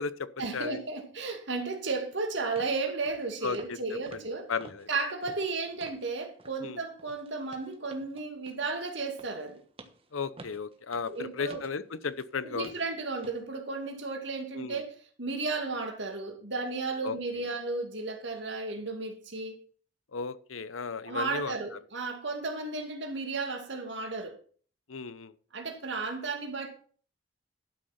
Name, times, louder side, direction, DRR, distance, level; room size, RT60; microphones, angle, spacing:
voice 1, 0.4-4.5 4.9-9.6 11.1-11.6 12.4-19.5 21.0-24.4 25.5-26.7, right 3 dB, 60° right, 2.4 m, -34 dB
sound 1, 2.6-2.8 3.0-3.2 3.5-3.8 4.1-6.1 6.4-6.6 7.0-12.3 12.6-12.9 13.2-13.4 13.9-14.0, right 2 dB, 30° right, 1.3 m, -51 dB
voice 2, 3.4-3.8 4.1-4.2 4.5-4.9 6.6-6.8 10.1-12.7 14.5-14.8 17.0-17.2 20.1-21.6 24.9-25.3, left 5 dB, 85° left, 0.8 m, -34 dB
12.0 x 6.5 x 5.9 m
head